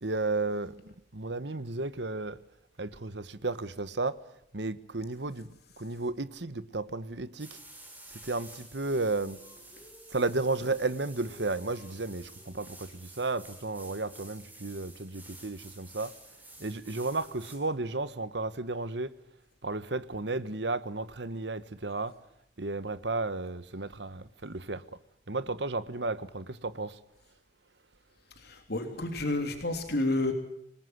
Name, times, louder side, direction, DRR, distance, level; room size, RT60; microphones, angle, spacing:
voice 1, 0.0-2.4 2.8-4.2 4.5-5.5 5.8-7.5 8.2-9.4 10.1-16.1 16.6-19.1 19.6-22.2 22.6-24.8 25.3-27.0, right 3 dB, 70° right, 1.3 m, -33 dB
sound 1, 7.4-17.6, right 1 dB, 10° right, 7.2 m, -51 dB
voice 2, 28.4-30.3, left 2 dB, 60° left, 3.2 m, -30 dB
27.0 x 19.5 x 8.0 m
head